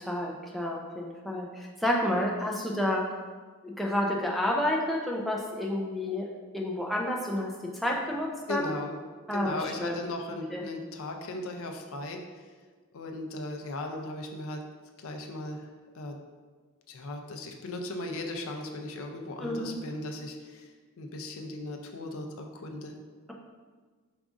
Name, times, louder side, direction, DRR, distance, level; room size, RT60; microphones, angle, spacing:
voice 1, 0.0-3.0 3.6-6.3 6.5-7.5 7.8-8.7 9.3-10.0 10.5-10.6 19.4-19.8, left 1 dB, ahead, -2 dB, 0.3 m, -30 dB
voice 2, 8.5-9.0 9.3-12.2 12.9-14.6 15.0-15.7 15.9-16.2 16.9-20.7 21.0-22.9, left 2 dB, 65° left, 3 dB, 0.5 m, -37 dB
4.9 x 2.4 x 3.5 m, 1.5 s
head